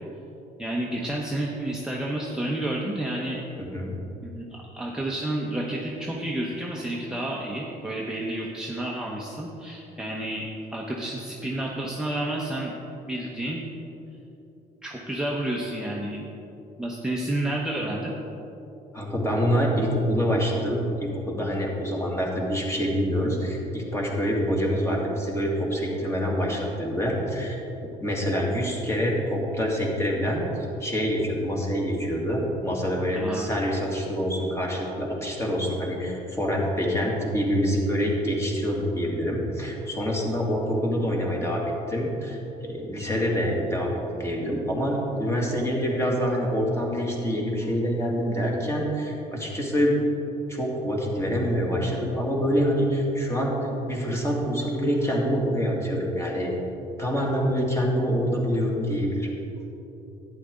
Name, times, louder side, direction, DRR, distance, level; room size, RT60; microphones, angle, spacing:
voice 1, 0.6-3.4 4.2-12.7 13.1-13.6 14.8-16.2 16.8-18.1 33.1-33.6, right 1 dB, 5° right, -3 dB, 0.9 m, -30 dB
voice 2, 3.6-4.0 18.9-27.6 28.0-30.4 30.8-50.0 50.5-53.5 53.9-56.5 57.0-59.3, equal, 15° left, -2 dB, 2.1 m, -26 dB
11.5 x 9.2 x 3.8 m, 3.0 s
cardioid pair, 110°, 17 cm